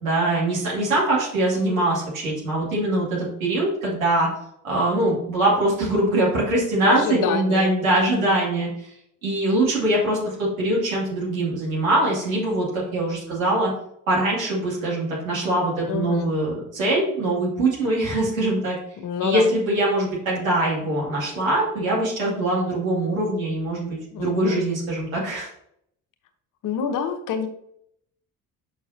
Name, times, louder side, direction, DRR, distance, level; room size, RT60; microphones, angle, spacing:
voice 1, 0.0-4.3 4.6-8.7 9.2-13.7 14.1-18.8 19.2-25.5, right 1 dB, 80° right, -4 dB, 2.4 m, -23 dB
voice 2, 6.8-8.4 15.9-16.3 19.0-19.5 24.1-24.7 26.6-27.5, left 7 dB, 50° left, 8 dB, 1.0 m, -27 dB
6.5 x 6.1 x 2.7 m, 0.71 s
figure-of-eight pair, 50°, 40 cm